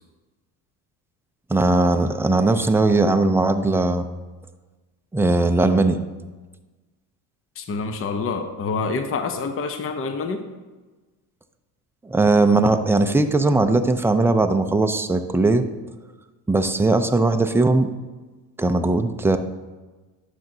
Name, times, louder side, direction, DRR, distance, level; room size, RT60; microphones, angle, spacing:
voice 1, 1.5-4.1 5.1-6.0 12.0-15.6 16.5-17.9 18.6-19.4, right 2 dB, 5° right, 7 dB, 0.5 m, -19 dB
voice 2, 7.6-10.4, left 4 dB, 30° left, 7 dB, 0.7 m, -27 dB
10.5 x 6.5 x 2.7 m, 1.2 s
supercardioid pair, 75°, 46 cm